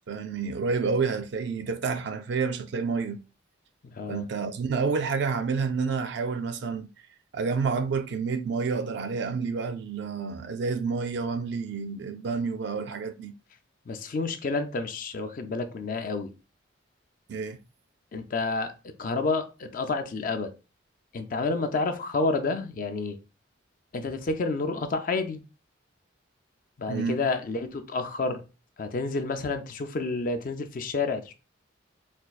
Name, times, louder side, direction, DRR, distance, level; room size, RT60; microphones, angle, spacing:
voice 1, 0.1-3.2 4.1-6.9 7.3-13.3 17.3-17.6 26.9-27.2, right 5 dB, 55° right, 0.3 m, -29 dB
voice 2, 3.8-4.2 13.9-16.3 18.1-18.7 19.0-20.5 21.1-23.2 23.9-25.4 26.8-28.4 28.8-31.3, left 3 dB, 45° left, 0.4 m, -29 dB
4.2 x 2.3 x 2.3 m
head